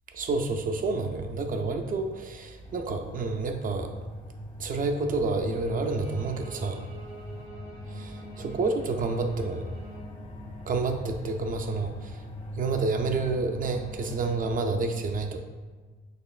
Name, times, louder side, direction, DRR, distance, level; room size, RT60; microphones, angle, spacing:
voice 1, 0.1-3.9 4.6-6.9 7.9-9.7 10.7-12.2 12.6-15.4, right 3 dB, 45° right, 5 dB, 0.4 m, -29 dB
sound 1, 2.6-14.7, left 1 dB, 30° left, 0.4 m, -41 dB
Bowed string instrument, 5.8-10.1, right 2 dB, 80° right, 0.8 m, -49 dB
4.2 x 3.0 x 2.3 m, 1.4 s
cardioid pair, 90°, 20 cm